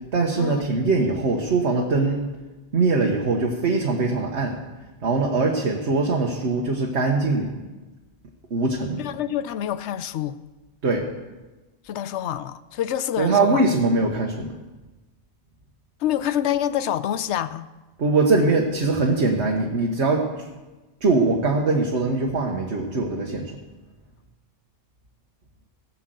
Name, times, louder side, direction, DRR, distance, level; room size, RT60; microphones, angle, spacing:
voice 1, 0.1-2.2 2.7-4.6 5.0-7.5 8.5-9.0 10.8-11.1 13.2-14.5 18.0-20.2 21.0-23.5, right 3 dB, 75° right, 1.5 m, -22 dB
voice 2, 9.0-10.4 11.8-13.6 16.0-17.7, left 11 dB, 80° left, 0.9 m, -27 dB
17.0 x 5.8 x 7.8 m
omnidirectional pair, 1.2 m